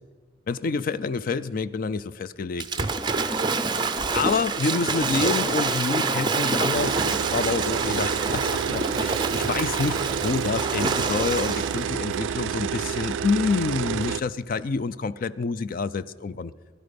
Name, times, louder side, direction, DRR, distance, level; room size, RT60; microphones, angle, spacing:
voice 1, 0.5-2.9 3.7-3.8 4.1-7.0 7.3-16.5, left 4 dB, 45° left, 15 dB, 0.4 m, -28 dB
Waves surf / Splash splatter, 2.6-11.9, right 4 dB, 25° right, 0.6 m, -27 dB
sound 1, 6.7-14.2, right 8 dB, 75° right, 0.3 m, -29 dB
16.5 x 11.0 x 5.2 m, 1.5 s
head